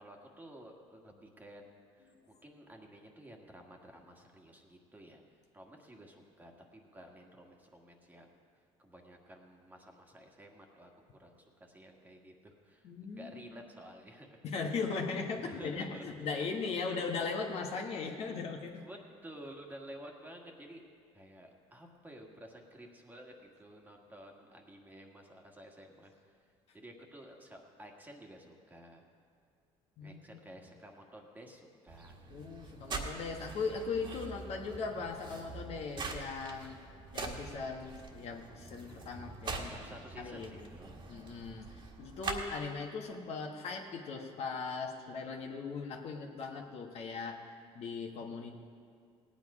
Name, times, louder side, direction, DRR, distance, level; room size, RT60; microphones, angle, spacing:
voice 1, 0.0-5.2 5.5-8.4 8.8-14.4 15.4-16.3 18.8-20.8 21.1-26.4 26.7-29.0 30.0-32.1 39.6-40.9, right 1 dB, 15° right, 1 dB, 1.7 m, -52 dB
voice 2, 12.8-13.5 14.4-18.8 30.0-30.4 32.3-36.8 37.1-39.8 40.2-40.7 41.0-48.5, left 4 dB, 60° left, 2 dB, 1.5 m, -39 dB
sound 1, 31.9-42.5, right 3 dB, 40° right, 1.7 m, -44 dB
17.0 x 9.2 x 4.9 m, 2.3 s
cardioid pair, 95°, 12 cm